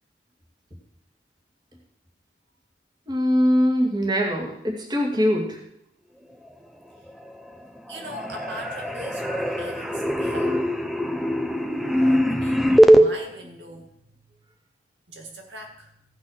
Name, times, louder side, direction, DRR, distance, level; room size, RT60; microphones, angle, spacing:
voice 1, 3.1-5.6, equal, 25° right, -1 dB, 2.2 m, -22 dB
sound 1, 7.1-7.6 7.9-13.0, equal, ahead, 0.6 m, -21 dB
voice 2, 7.9-10.6 12.0-14.4 15.1-16.0, equal, 80° right, 2 dB, 2.2 m, -40 dB
Crying sobbing / Screech, 8.4-8.9 9.2-10.7 11.5-12.2, right 1 dB, 55° right, 2.8 m, -44 dB
16.0 x 6.2 x 6.5 m, 0.75 s
head